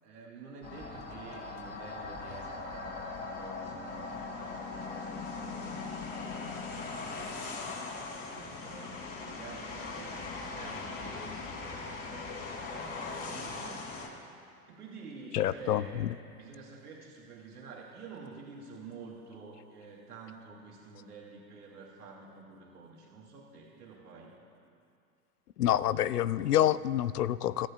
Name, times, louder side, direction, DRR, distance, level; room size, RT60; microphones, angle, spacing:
voice 1, 0.0-14.0 14.7-24.3, right 4 dB, 85° right, -3 dB, 2.5 m, -49 dB
sound 1, 0.6-14.1, left 3 dB, 30° left, 4.5 m, -40 dB
voice 2, 15.3-15.8 25.6-27.7, left 12 dB, 85° left, 17 dB, 0.6 m, -27 dB
29.5 x 14.5 x 2.4 m, 2.5 s
hypercardioid pair, 90°, 45 cm